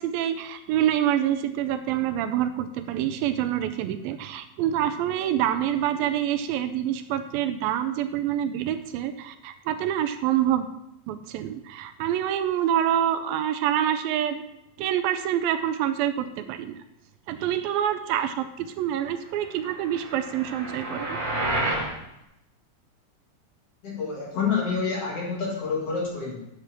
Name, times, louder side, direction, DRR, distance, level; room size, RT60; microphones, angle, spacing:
voice 1, 0.0-10.7 11.1-14.4 14.8-16.8 17.3-21.2, right 11 dB, 85° right, 9 dB, 2.3 m, -26 dB
sound 1, 19.7-21.9, right 1 dB, 45° right, 1.1 m, -30 dB
voice 2, 23.8-26.5, left 5 dB, 50° left, -2 dB, 2.1 m, -28 dB
10.5 x 6.7 x 4.5 m, 0.83 s
omnidirectional pair, 4.2 m